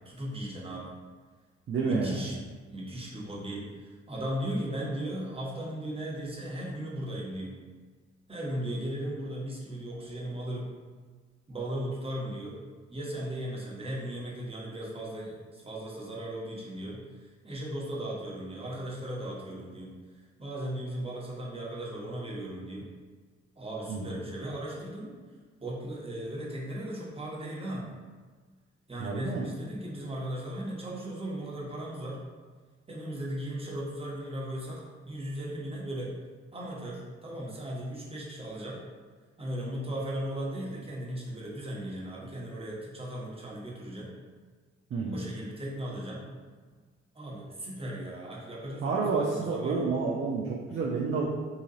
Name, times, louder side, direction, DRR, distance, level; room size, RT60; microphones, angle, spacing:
voice 1, 0.0-0.9 1.8-7.6 8.3-10.7 11.5-12.6 12.9-19.9 20.4-22.9 23.6-25.1 25.6-27.9 28.9-32.2 32.9-36.1 36.5-38.8 39.4-44.1 45.1-46.3 47.1-49.9, right 1 dB, 15° right, -5 dB, 1.1 m, -37 dB
voice 2, 1.7-2.3 23.9-24.2 29.0-29.4 44.9-45.3 48.8-51.2, right 4 dB, 35° right, -3 dB, 0.5 m, -29 dB
3.9 x 2.8 x 2.7 m, 1.5 s
hypercardioid pair, 40°, 34 cm